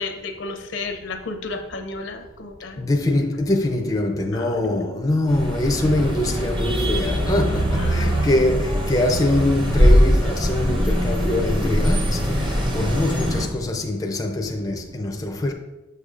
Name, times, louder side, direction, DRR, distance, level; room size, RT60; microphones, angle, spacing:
voice 1, 0.0-2.8 4.3-4.6 7.8-8.3, left 3 dB, 70° left, 0.6 m, -32 dB
voice 2, 2.8-12.4 12.7-15.5, left 1 dB, 20° left, 0.4 m, -23 dB
sound 1, 5.3-13.5, equal, 25° right, 0.8 m, -21 dB
6.7 x 6.6 x 2.5 m
head